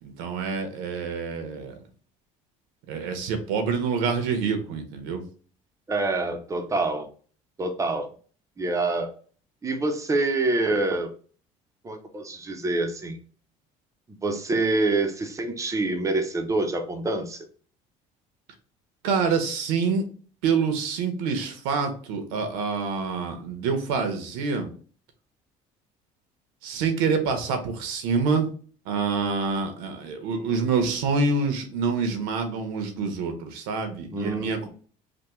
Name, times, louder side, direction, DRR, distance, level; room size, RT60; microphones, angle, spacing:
voice 1, 0.0-1.7 2.9-5.2 19.0-20.1 20.4-24.7 26.6-28.5 28.8-34.7, right 5 dB, 90° right, 6 dB, 0.8 m, -26 dB
voice 2, 5.9-7.1 7.6-8.1 8.6-9.1 9.6-11.1 11.8-13.2 14.2-17.5 34.1-34.7, right 2 dB, 20° right, 5 dB, 0.7 m, -26 dB
3.5 x 2.2 x 3.0 m, 0.42 s
cardioid pair, 110°, 15 cm